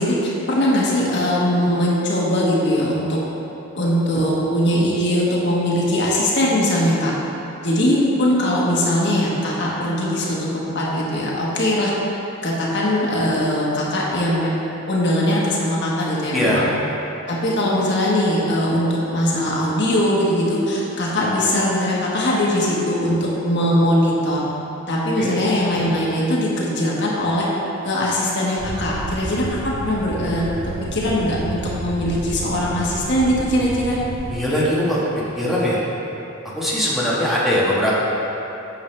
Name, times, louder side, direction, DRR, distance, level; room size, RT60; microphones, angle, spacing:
voice 1, 0.0-3.2 3.7-7.1 7.6-11.9 12.4-14.5 14.9-16.7 17.3-24.5 24.9-27.5 27.8-34.0, left 1 dB, 60° left, -5 dB, 1.3 m, -21 dB
voice 2, 16.3-16.6 25.2-25.4 34.3-35.0 35.3-35.8 36.4-37.9, equal, ahead, -9 dB, 1.4 m, -20 dB
sound 1, 28.6-34.4, right 2 dB, 50° right, 0.5 m, -31 dB
8.9 x 6.5 x 3.3 m, 3.0 s
head